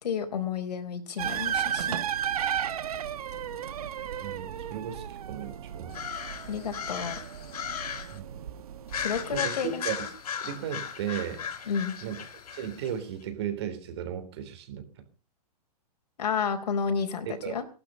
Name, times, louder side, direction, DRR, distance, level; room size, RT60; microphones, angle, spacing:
voice 1, 0.0-2.0 6.5-7.2 9.0-10.1 11.7-11.9 16.2-17.6, left 6 dB, 85° left, 6 dB, 4.2 m, -31 dB
sound 1, 1.2-9.4, right 9 dB, 65° right, 1.5 m, -34 dB
voice 2, 4.2-6.0 8.1-8.4 9.3-10.0 10.4-11.5 12.0-12.2 12.5-14.9 17.3-17.6, right 9 dB, 40° right, 9 dB, 3.4 m, -35 dB
sound 2, 5.9-8.2 8.9-12.9, left 7 dB, 70° left, 4.1 m, -36 dB
19.0 x 12.0 x 5.5 m, 0.37 s
hypercardioid pair, 180°, 20 cm